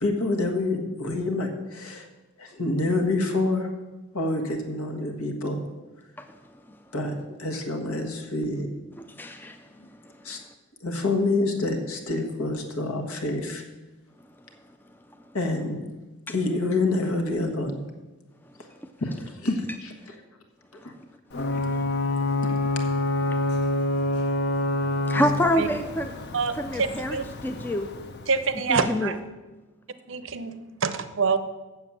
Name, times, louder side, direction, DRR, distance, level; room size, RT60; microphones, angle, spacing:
voice 1, 0.0-2.1 2.4-3.7 4.1-5.6 6.9-8.7 10.2-10.4 10.8-13.6 15.3-15.9 16.3-17.8 19.0-20.2 20.8-20.9 22.4-22.6, left 2 dB, 75° left, 4 dB, 1.4 m, -27 dB
voice 2, 9.1-9.6 23.3-23.4 25.1-26.1 26.6-27.9 28.7-29.1, equal, 10° left, 6 dB, 0.3 m, -27 dB
Ocean / Boat Water vehicle / Alarm, 21.3-28.9, left 2 dB, 50° left, 0.6 m, -27 dB
voice 3, 26.3-27.2 28.3-29.2 30.1-31.4, right 5 dB, 55° right, 12 dB, 0.6 m, -26 dB
7.4 x 7.0 x 7.3 m, 1.2 s
head